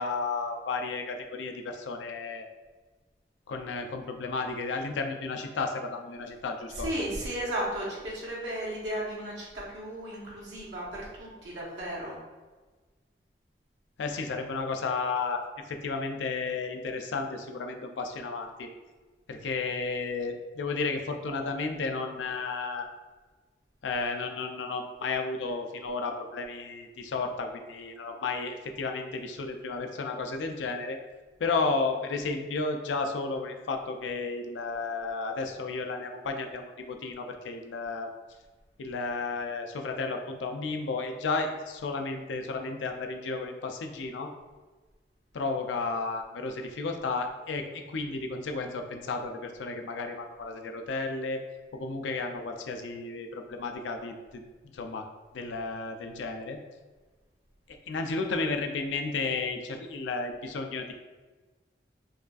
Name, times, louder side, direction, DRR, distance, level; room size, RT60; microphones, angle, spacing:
voice 1, 0.0-2.5 3.5-6.9 14.0-18.7 19.3-22.9 23.8-31.0 31.4-38.1 38.8-44.3 45.3-51.4 51.7-54.4 54.7-55.1 55.3-56.6 57.9-60.9, left 3 dB, 90° left, 5 dB, 0.4 m, -33 dB
voice 2, 6.7-12.2, right 1 dB, 85° right, -5 dB, 1.1 m, -34 dB
4.7 x 2.3 x 2.4 m, 1.3 s
head